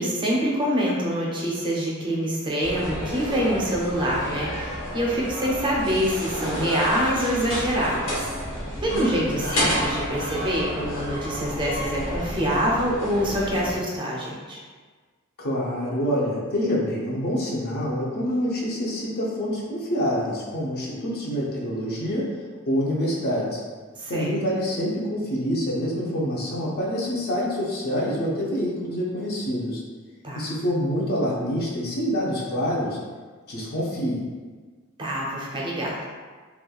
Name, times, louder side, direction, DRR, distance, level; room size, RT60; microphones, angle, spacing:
voice 1, 0.0-8.3 8.8-14.6 23.9-24.3 30.2-30.4 35.0-36.0, equal, 25° right, -4 dB, 0.5 m, -25 dB
sound 1, 2.6-13.7, equal, 70° left, 0.9 m, -30 dB
voice 2, 8.9-9.4 15.4-22.3 22.7-23.6 24.1-29.8 30.4-33.0 33.5-34.2, equal, 50° left, -4 dB, 0.6 m, -26 dB
3.1 x 2.2 x 2.3 m, 1.5 s
head